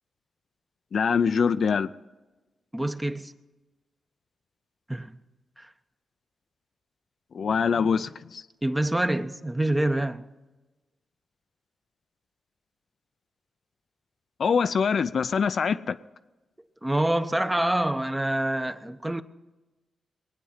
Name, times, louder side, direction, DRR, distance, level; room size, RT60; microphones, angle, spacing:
voice 1, 0.9-1.9 7.3-8.4 14.4-16.0, left 6 dB, 65° left, 0.4 m, -24 dB
voice 2, 2.7-3.3 4.9-5.1 5.6-5.7 8.6-10.2 16.8-19.2, right 1 dB, 15° right, 0.9 m, -26 dB
21.0 x 9.2 x 5.7 m
supercardioid pair, 40°, 0 cm